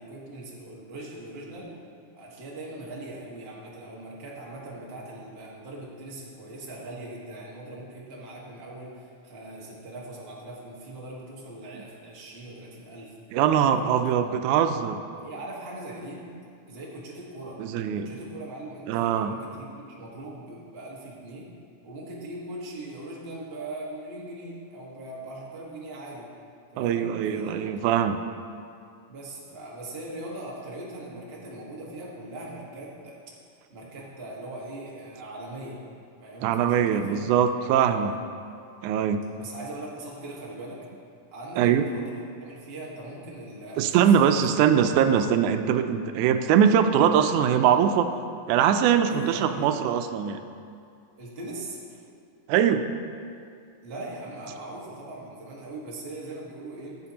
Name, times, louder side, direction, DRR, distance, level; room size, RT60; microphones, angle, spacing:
voice 1, 0.0-1.7 2.1-13.1 13.7-14.3 15.1-16.2 16.7-17.6 18.0-21.5 21.8-26.3 26.7-27.7 29.1-33.2 33.7-35.8 36.2-38.2 39.3-40.8 41.3-44.4 49.1-49.7 51.2-51.8 53.8-57.0, right 1 dB, 30° right, -5 dB, 1.1 m, -40 dB
voice 2, 13.3-15.0 17.6-18.1 18.9-19.3 26.8-28.2 36.4-38.1 38.8-39.2 41.6-41.8 43.8-48.1 48.5-50.4 52.5-52.9, right 8 dB, 90° right, 8 dB, 2.0 m, -22 dB
15.0 x 7.7 x 2.9 m, 2.4 s
omnidirectional pair, 3.4 m